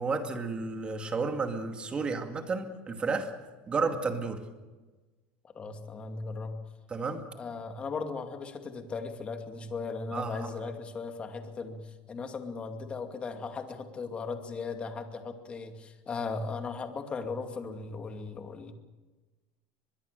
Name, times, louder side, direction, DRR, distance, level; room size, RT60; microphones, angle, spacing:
voice 1, 0.0-3.3 3.7-4.4 6.9-7.2 10.1-10.7, right 4 dB, 20° right, 5 dB, 2.3 m, -32 dB
voice 2, 5.5-6.6 7.4-18.7, left 4 dB, 25° left, 5 dB, 2.4 m, -37 dB
23.5 x 21.5 x 6.8 m, 1.3 s
cardioid pair, 150°, 5 cm